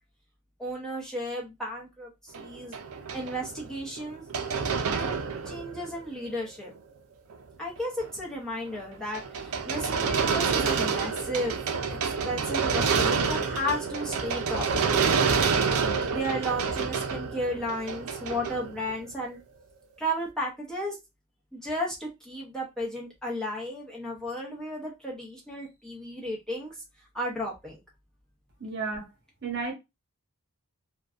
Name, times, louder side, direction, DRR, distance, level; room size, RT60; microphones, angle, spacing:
voice 1, 0.6-2.8 3.1-4.2 4.9-5.2 5.4-6.7 7.6-11.6 12.0-15.2 16.1-19.4 20.0-21.0 21.5-26.8 27.1-27.8, equal, 5° left, 0.7 m, -34 dB
sound 1, 2.3-6.1 6.5-6.6 7.3-7.4 7.8-8.1 8.7-19.2, right 5 dB, 70° right, 0.4 m, -28 dB
voice 2, 28.6-29.1 29.4-29.7, right 4 dB, 50° right, 1.0 m, -32 dB
2.6 x 2.2 x 2.4 m
head